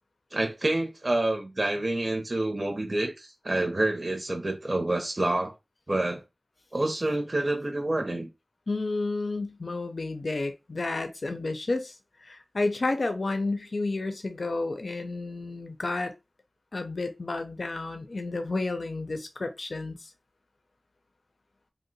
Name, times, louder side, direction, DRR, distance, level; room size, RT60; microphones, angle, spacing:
voice 1, 0.3-5.5 5.9-6.2 6.7-8.3, right 2 dB, 45° right, 0.6 m, -28 dB
voice 2, 8.7-11.9 12.2-16.1 16.7-20.1, left 2 dB, 75° left, 0.4 m, -31 dB
2.7 x 2.0 x 3.9 m
wide cardioid pair, 50°, 0 cm